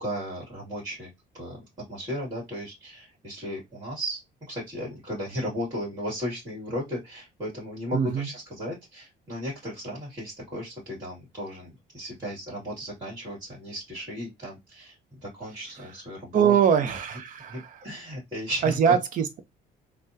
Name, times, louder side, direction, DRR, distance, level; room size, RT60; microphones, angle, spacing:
voice 1, 0.0-1.6 1.9-4.2 4.5-15.0 15.2-17.0 17.5-19.0, equal, 25° right, 1.9 m, -35 dB
voice 2, 7.9-8.3 16.3-17.8 18.6-19.4, right 8 dB, 55° right, 0.7 m, -23 dB
3.4 x 2.2 x 2.7 m
cardioid pair, 110°, 17 cm